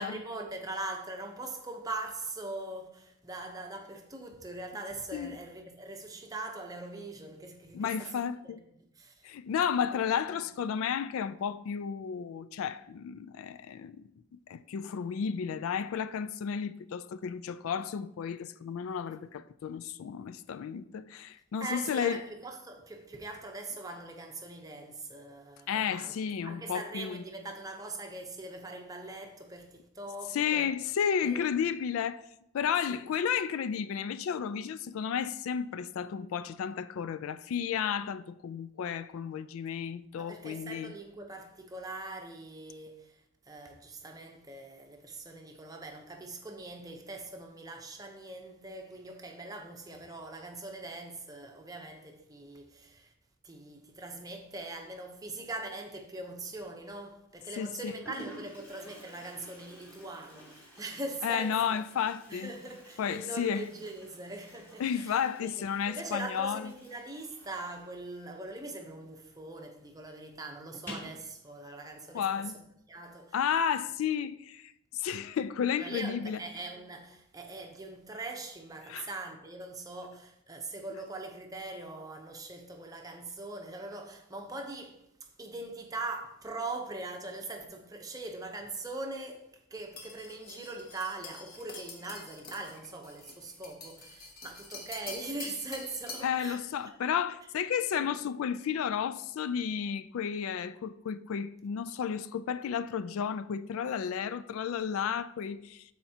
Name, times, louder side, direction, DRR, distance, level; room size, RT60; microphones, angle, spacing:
voice 1, 0.0-8.6 8.9-9.3 9.9-10.5 21.6-26.1 26.4-30.7 31.2-31.5 32.9-33.0 40.2-53.1 53.4-61.8 62.3-65.5 65.8-72.5 72.9-73.4 75.8-97.0 97.9-98.1, right 2 dB, 15° right, 0.7 m, -42 dB
voice 2, 7.7-8.6 9.2-14.1 14.5-22.2 25.7-27.2 30.3-32.2 32.5-40.9 57.6-57.9 61.2-62.5 63.0-63.6 64.8-66.7 72.1-72.5 73.3-76.4 78.9-79.1 96.2-105.8, left 7 dB, 70° left, 0.3 m, -32 dB
Toilet flush, 56.6-57.0 57.7-57.8 58.0-69.3 69.6-69.7 70.0-70.1 70.7-71.2, right 1 dB, 10° left, 2.5 m, -51 dB
sound 1, 90.0-96.4, left 3 dB, 40° left, 1.1 m, -46 dB
13.0 x 4.3 x 2.8 m
head